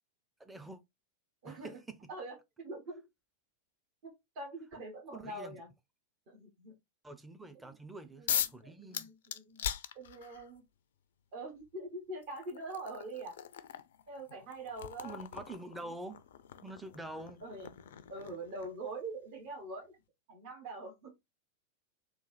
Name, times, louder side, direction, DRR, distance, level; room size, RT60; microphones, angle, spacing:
voice 1, 0.4-0.8 1.4-2.0 5.1-5.6 7.0-9.1 15.0-16.2 16.6-17.4, right 2 dB, 5° right, 0.6 m, -46 dB
voice 2, 1.4-1.8 2.1-2.9 4.0-5.7 6.3-6.7 7.6-7.7 8.2-9.7 9.9-10.6 11.3-13.3 14.1-15.2 15.8-15.9 17.4-17.7 18.1-19.9 20.3-21.1, right 2 dB, 45° right, 1.3 m, -44 dB
sound 1, 8.3-8.6 8.9-10.5 11.6-11.7 12.2-18.9, left 9 dB, 60° left, 0.3 m, -40 dB
3.7 x 2.5 x 3.1 m
figure-of-eight pair, 90°, 0 cm